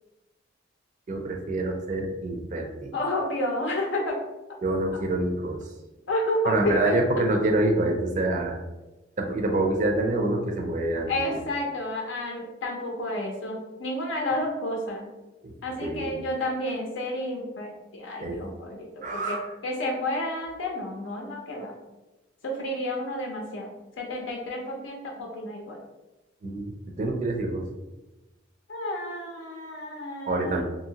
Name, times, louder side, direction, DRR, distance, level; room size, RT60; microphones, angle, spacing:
voice 1, 1.1-2.9 4.6-5.7 6.4-8.6 9.2-11.4 15.4-15.5 15.8-16.1 18.2-18.4 19.0-19.5 26.4-27.6 30.3-30.6, right 2 dB, 40° right, 3 dB, 0.4 m, -26 dB
voice 2, 2.9-4.2 6.1-6.9 11.1-15.0 15.6-19.4 19.6-21.7 22.4-23.7 24.0-25.8 28.7-30.6, left 1 dB, 75° left, 0 dB, 0.5 m, -30 dB
2.7 x 2.7 x 2.7 m, 1.1 s
head